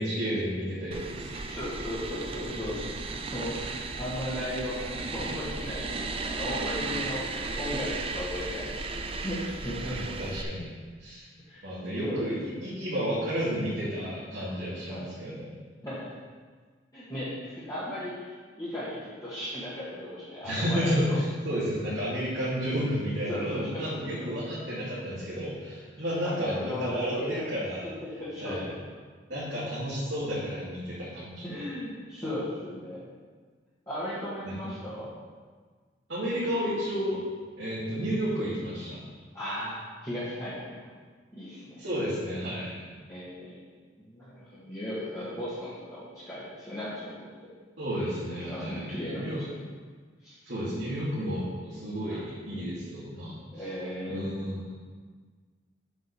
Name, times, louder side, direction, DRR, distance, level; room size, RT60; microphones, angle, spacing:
voice 1, 0.0-1.3 9.9-10.7 11.0-11.3 11.6-15.5 20.4-27.9 28.4-28.7 29.3-31.6 34.4-34.7 36.1-37.2 37.6-39.0 41.8-42.7 47.8-48.8 49.1-49.4 50.4-53.6 54.1-54.8, equal, 85° right, -11 dB, 2.7 m, -31 dB
sound 1, 0.9-10.4, right 3 dB, 30° right, 0.5 m, -35 dB
voice 2, 1.3-2.9 3.3-8.8 9.2-10.0 11.5-11.6 12.0-12.2 14.9-15.1 15.8-16.1 16.9-21.2 23.3-24.3 26.0-27.5 28.0-28.8 31.4-33.1 33.9-35.1 39.3-40.9 41.3-41.8 43.1-43.7 44.0-47.5 48.4-49.6 50.2-50.4 52.1-52.2 53.5-54.3, left 1 dB, 20° left, -12 dB, 2.0 m, -36 dB
7.8 x 5.2 x 6.9 m, 1.5 s
head